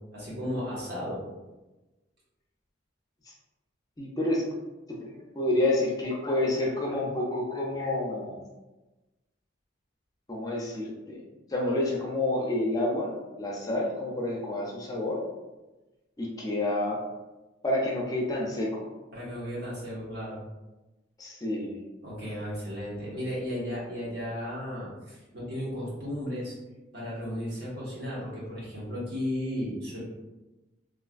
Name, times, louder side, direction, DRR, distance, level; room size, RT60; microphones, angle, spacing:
voice 1, 0.1-1.2 19.1-20.4 22.0-26.5 26.9-30.0, equal, 55° right, -7 dB, 1.3 m, -34 dB
voice 2, 4.0-4.4 4.9-8.4 10.3-11.2 11.5-13.1 13.4-15.2 16.2-17.0 17.6-18.8 21.2-21.8, left 1 dB, 20° left, -2 dB, 0.4 m, -29 dB
3.2 x 2.5 x 2.4 m, 1.1 s
head